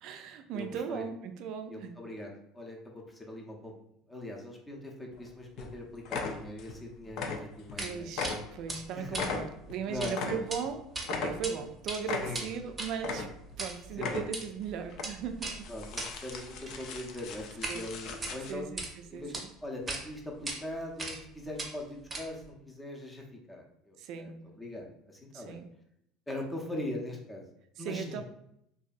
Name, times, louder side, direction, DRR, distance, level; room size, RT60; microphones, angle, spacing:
voice 1, 0.0-2.0 7.3-7.4 7.8-15.7 17.7-17.9 18.5-19.5 24.0-24.5 25.3-25.7 27.8-28.2, right 7 dB, 65° right, 8 dB, 0.3 m, -38 dB
voice 2, 0.5-1.0 1.7-3.7 4.1-8.1 8.9-9.2 9.9-10.3 12.2-12.5 14.0-14.2 15.7-24.3 24.6-25.6 26.3-27.4 27.8-28.2, left 1 dB, 15° left, 0 dB, 0.6 m, -41 dB
sound 1, 5.1-5.3 5.6-5.7 6.0-6.8 7.1-7.8 8.1-10.7 11.0-11.7 12.0-12.6 13.0-13.6 13.9-14.5 14.9-15.1 15.5-18.5, left 4 dB, 65° left, 0.4 m, -37 dB
sound 2, 7.8-7.9 8.2-8.4 8.7-10.1 10.4-10.6 10.9-11.5 11.8-17.8 18.1-18.9 19.3-19.4 19.9-20.0 20.5-20.6 21.0-21.3 21.6-22.5, right 2 dB, 25° right, 0.7 m, -39 dB
2.6 x 2.3 x 2.5 m, 0.76 s
supercardioid pair, 95°, 0 cm